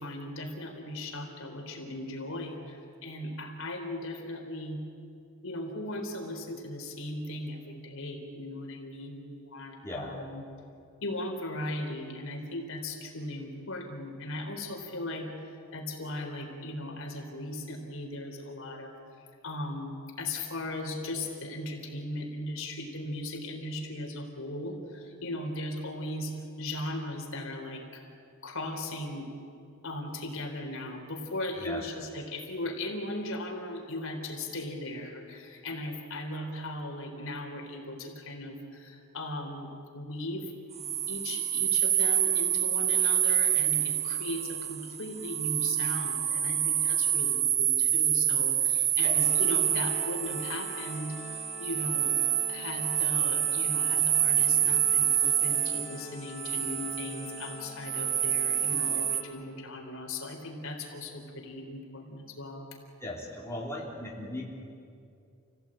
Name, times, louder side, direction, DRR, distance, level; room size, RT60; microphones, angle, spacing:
voice 1, 0.0-4.8 5.4-10.4 11.0-18.9 19.4-28.0 28.4-29.3 29.8-40.5 41.1-52.2 52.5-62.8, left 1 dB, 65° left, 2 dB, 3.8 m, -38 dB
voice 2, 9.8-10.2 31.6-31.8 49.0-49.2 63.0-64.4, left 1 dB, 15° left, -4 dB, 3.6 m, -37 dB
sound 1, 40.7-59.2, right 10 dB, 30° right, 1.0 m, -27 dB
Organ, 49.1-59.9, left 4 dB, 30° left, 3.3 m, -46 dB
29.0 x 17.0 x 8.9 m, 2.5 s
head